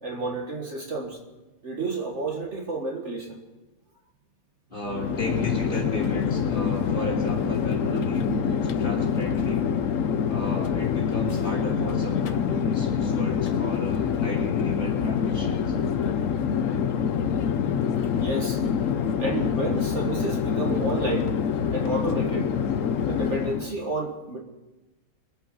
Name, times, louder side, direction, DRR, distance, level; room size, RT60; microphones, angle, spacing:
voice 1, 0.0-1.2 1.6-3.4 18.2-18.6 19.2-21.3 21.7-22.5 23.0-24.4, right 2 dB, 45° right, 0 dB, 1.9 m, -30 dB
voice 2, 4.7-9.7 10.3-15.8, left 1 dB, 30° left, 0 dB, 3.2 m, -34 dB
Chatter / Fixed-wing aircraft airplane, 4.8-23.8, left 7 dB, 60° left, 1.0 m, -26 dB
23.5 x 8.1 x 5.6 m, 1.1 s
omnidirectional pair, 1.7 m